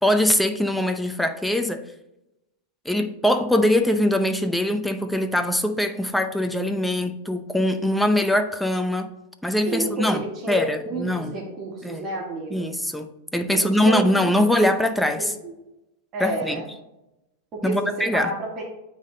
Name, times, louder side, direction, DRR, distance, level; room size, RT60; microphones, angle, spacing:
voice 1, 0.0-1.8 2.9-9.1 9.4-11.4 11.8-12.1 12.5-13.1 13.3-15.3 16.2-16.6 17.6-18.3, left 1 dB, ahead, 7 dB, 0.6 m, -22 dB
voice 2, 9.6-12.7 13.5-14.5 15.2-15.5 16.1-16.7 17.5-18.6, right 2 dB, 35° right, -1 dB, 1.9 m, -30 dB
8.9 x 3.6 x 3.8 m, 0.92 s
supercardioid pair, 135°, 0 cm